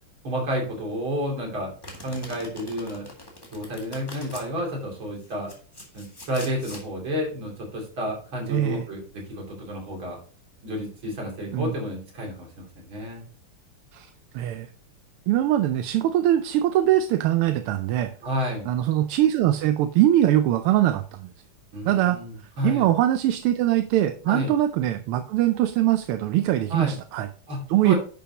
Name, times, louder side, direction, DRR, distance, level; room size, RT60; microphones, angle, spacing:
voice 1, 0.2-1.7 2.0-3.1 3.5-5.5 5.9-10.2 10.6-13.2 18.2-18.7 21.7-22.9 24.3-24.5 26.7-26.9 27.5-28.0, equal, 65° right, -1 dB, 3.7 m, -30 dB
Domestic sounds home sounds, 1.8-4.5 5.2-6.8, left 1 dB, 10° left, 1.8 m, -43 dB
voice 2, 8.5-8.9 11.5-11.7 13.9-14.1 14.3-14.7 15.3-18.1 18.6-21.3 21.8-22.2 22.6-27.3 27.7-27.9, right 13 dB, 85° right, 8 dB, 1.6 m, -22 dB
10.5 x 6.9 x 2.9 m, 0.41 s
omnidirectional pair, 2.4 m